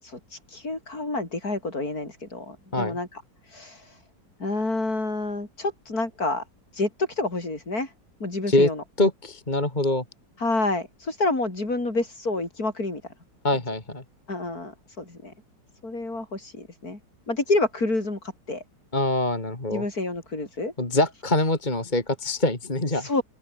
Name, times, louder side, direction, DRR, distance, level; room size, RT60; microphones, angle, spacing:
voice 1, 0.0-4.0 4.4-6.4 6.7-7.9 8.2-8.8 10.4-13.0 14.3-15.3 15.8-17.0 17.3-18.6 19.7-20.7 22.9-23.2, left 2 dB, 55° left, 6.2 m, -28 dB
voice 2, 9.0-10.0 13.4-14.0 18.9-19.8 20.8-23.1, left 2 dB, 25° left, 3.3 m, -24 dB
open air
omnidirectional pair, 1.9 m